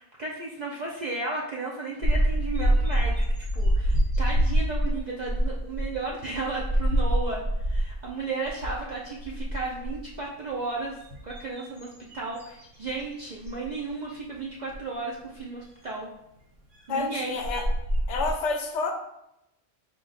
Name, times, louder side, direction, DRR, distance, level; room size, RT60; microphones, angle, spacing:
voice 1, 0.0-3.2 3.5-11.0 11.2-16.1 16.9-17.4, right 3 dB, 60° right, -3 dB, 0.4 m, -34 dB
sound 1, 2.0-8.1 8.4-8.8 9.1-10.1 10.8-13.0 13.4-13.7 14.7-14.8 17.0-17.1 17.4-18.3, equal, 75° right, 1.3 m, -26 dB
voice 2, 16.9-17.7 18.1-18.9, left 4 dB, 70° left, 4 dB, 0.9 m, -29 dB
4.5 x 2.3 x 3.9 m, 0.85 s
omnidirectional pair, 1.3 m